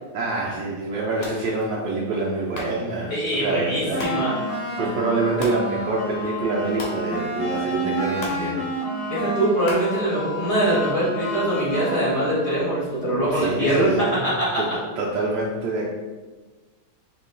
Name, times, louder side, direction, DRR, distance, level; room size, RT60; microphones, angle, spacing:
voice 1, 0.1-9.1 13.3-15.9, right 3 dB, 75° right, -3 dB, 1.1 m, -27 dB
sound 1, 1.1-10.8, left 2 dB, 85° left, 1.8 m, -41 dB
voice 2, 3.1-4.3 9.1-14.6, right 1 dB, 35° left, -10 dB, 1.4 m, -23 dB
sound 2, 3.9-12.7, equal, 55° left, 1.6 m, -30 dB
4.4 x 2.8 x 3.8 m, 1.3 s
omnidirectional pair, 2.3 m